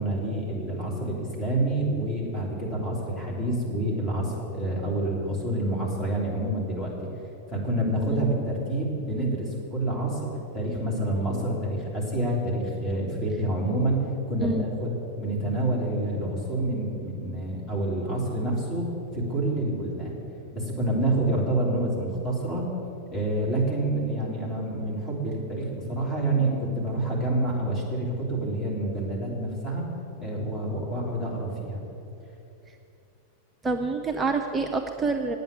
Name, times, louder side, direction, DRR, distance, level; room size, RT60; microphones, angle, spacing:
voice 1, 0.0-6.9 7.5-14.0 14.3-20.2 20.5-22.6 23.1-29.8 30.2-31.8, right 1 dB, 20° left, -3 dB, 3.3 m, -28 dB
voice 2, 33.6-35.4, right 3 dB, 15° right, 3 dB, 0.6 m, -27 dB
9.2 x 7.9 x 8.6 m, 2.9 s
figure-of-eight pair, 90°, 0 cm